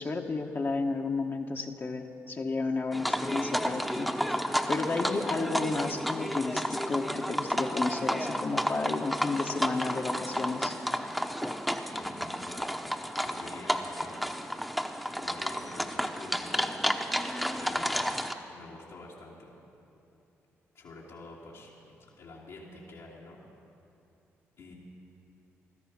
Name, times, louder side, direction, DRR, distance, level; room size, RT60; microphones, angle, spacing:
voice 1, 0.0-4.2 4.7-10.8, left 3 dB, 40° left, 2 dB, 1.0 m, -32 dB
sound 1, 2.9-18.3, equal, ahead, 0.9 m, -32 dB
voice 2, 11.9-12.7 13.2-14.4 15.2-16.7 17.6-18.1 18.5-19.6 20.7-23.4 24.6-24.7, left 2 dB, 80° left, -7 dB, 2.2 m, -48 dB
15.5 x 13.0 x 5.9 m, 2.8 s
supercardioid pair, 55°, 6 cm